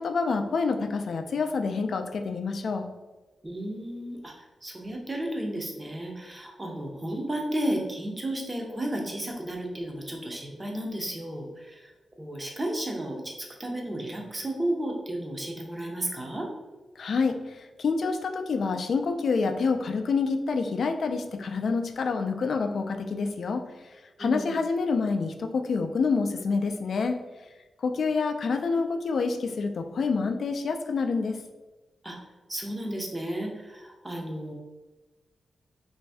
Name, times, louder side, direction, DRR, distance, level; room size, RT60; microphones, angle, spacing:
voice 1, 0.0-2.9 17.0-23.9 24.2-27.2 27.8-31.4, left 4 dB, 55° left, 6 dB, 0.3 m, -27 dB
voice 2, 3.4-11.9 12.2-16.5 24.2-24.5 32.0-32.2 32.5-34.5, right 1 dB, 15° right, 0 dB, 0.5 m, -33 dB
3.2 x 2.6 x 3.3 m, 1.2 s
wide cardioid pair, 160°, 0 cm